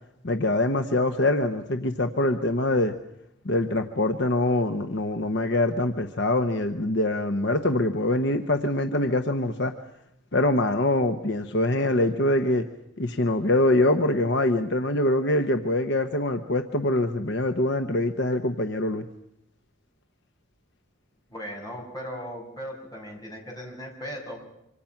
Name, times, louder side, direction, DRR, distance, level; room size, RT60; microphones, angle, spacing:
voice 1, 0.2-2.9 3.4-9.7 10.3-12.6 13.0-19.0, left 1 dB, 60° left, 7 dB, 1.1 m, -24 dB
voice 2, 21.3-24.4, equal, 20° left, -1 dB, 6.2 m, -37 dB
26.5 x 25.5 x 5.9 m, 0.84 s
head